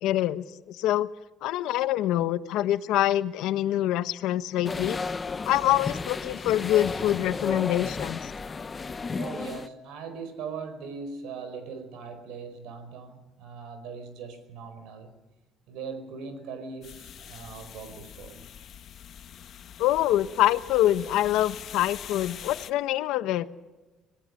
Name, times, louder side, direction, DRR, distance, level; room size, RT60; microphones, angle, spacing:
voice 1, 0.0-1.1 1.4-5.0 5.5-8.3 19.8-23.5, left 13 dB, 85° left, 13 dB, 1.0 m, -25 dB
sound 1, 4.6-9.7, left 4 dB, 25° left, 0.7 m, -33 dB
voice 2, 9.1-15.1 15.7-18.5, right 5 dB, 90° right, 10 dB, 4.9 m, -40 dB
sound 2, 16.8-22.7, left 9 dB, 50° left, 1.1 m, -44 dB
26.5 x 18.5 x 6.6 m, 1.2 s
cardioid pair, 140°, 0 cm